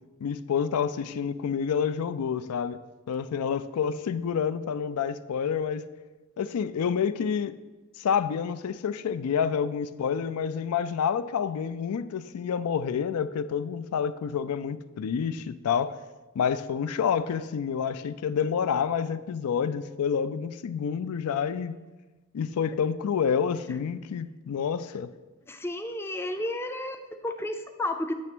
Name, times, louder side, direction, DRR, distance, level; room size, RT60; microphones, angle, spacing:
voice 1, 0.2-2.8 3.1-5.9 6.4-7.5 8.0-16.0 16.3-21.8 22.3-25.1, left 7 dB, 85° left, 0.4 m, -28 dB
voice 2, 25.5-28.1, left 1 dB, 10° left, 0.4 m, -32 dB
8.3 x 3.3 x 6.0 m
head